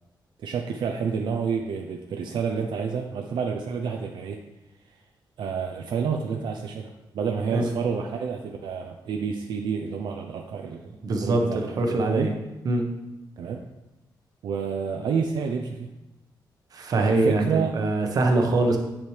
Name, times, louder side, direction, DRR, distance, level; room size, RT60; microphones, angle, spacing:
voice 1, 0.4-4.4 5.4-10.9 11.2-12.4 13.4-13.6 14.4-15.9 16.9-17.8, right 6 dB, 75° right, 3 dB, 0.6 m, -29 dB
voice 2, 11.0-12.3 12.6-12.8 16.7-18.8, right 2 dB, 50° right, 3 dB, 1.0 m, -23 dB
8.6 x 7.2 x 3.3 m, 1.0 s
wide cardioid pair, 165°, 8 cm